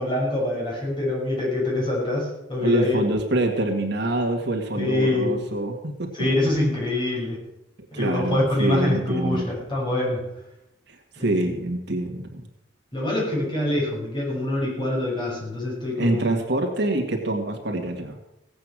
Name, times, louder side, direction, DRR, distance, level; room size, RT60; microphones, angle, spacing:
voice 1, 0.0-3.0 4.8-5.4 6.1-7.4 7.9-10.2 11.2-11.5 12.9-16.3, left 1 dB, 25° left, -4 dB, 6.4 m, -25 dB
voice 2, 2.6-6.1 7.9-9.4 10.9-12.4 16.0-18.2, right 1 dB, 60° right, 3 dB, 1.9 m, -25 dB
17.0 x 8.5 x 6.3 m, 0.86 s
head